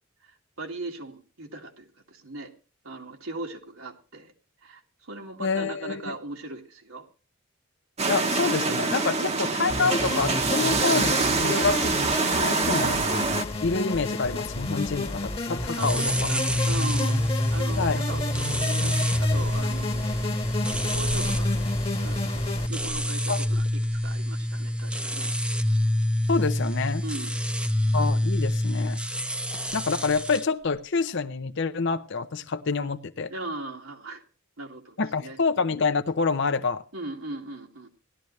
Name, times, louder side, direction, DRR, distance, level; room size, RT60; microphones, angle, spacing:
voice 1, 0.2-2.5 2.8-4.3 4.6-7.1 9.2-9.4 15.7-20.5 20.7-21.6 22.0-25.3 27.0-27.3 33.3-34.2 34.6-35.4 36.9-37.9, right 2 dB, 80° right, 1 dB, 2.2 m, -39 dB
voice 2, 5.4-6.1 8.1-13.0 13.6-16.0 17.8-18.0 23.3-23.4 26.3-27.0 27.9-29.0 29.7-33.3 35.0-36.8, left 4 dB, 60° left, 8 dB, 0.7 m, -27 dB
sound 1, 8.0-13.4, right 3 dB, 30° right, 1.0 m, -25 dB
sound 2, 9.7-22.7, left 2 dB, 25° left, 1.4 m, -32 dB
sound 3, 15.7-30.4, left 1 dB, 5° right, 0.7 m, -26 dB
17.5 x 12.0 x 3.2 m, 0.36 s
head